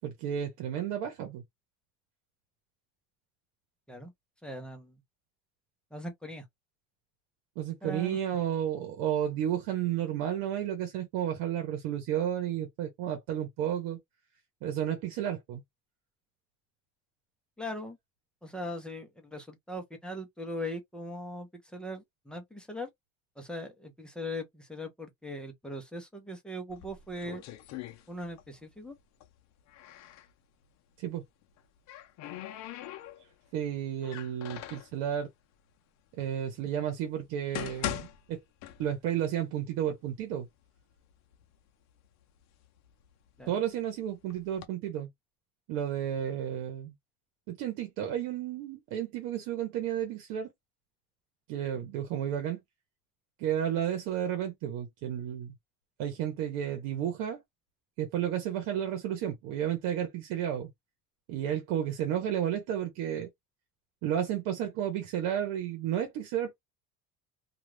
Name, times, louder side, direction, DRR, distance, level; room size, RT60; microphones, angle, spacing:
voice 1, 0.0-1.4 7.6-14.0 14.6-15.6 31.0-31.2 33.5-35.3 36.2-38.4 38.8-40.5 43.5-45.1 45.7-46.9 47.5-50.5 51.5-52.6 53.4-55.5 56.0-57.4 58.0-60.7 61.3-63.3 64.0-66.5, right 10 dB, 85° right, 0.9 m, -32 dB
voice 2, 4.4-4.9 5.9-6.4 7.8-8.2 17.6-18.0 18.4-22.9 23.4-27.4 28.1-28.9 43.4-43.6, left 1 dB, 5° left, 0.7 m, -40 dB
sound 1, 26.7-28.6 28.9-30.3 31.4-33.5 34.0-34.9 35.7-35.8 36.5-36.6 37.2-39.2 39.5-39.6 40.3-40.4 40.8-41.5 42.0-43.7 44.3-44.7, left 12 dB, 55° left, 0.6 m, -41 dB
2.4 x 2.4 x 3.2 m
cardioid pair, 145°, 32 cm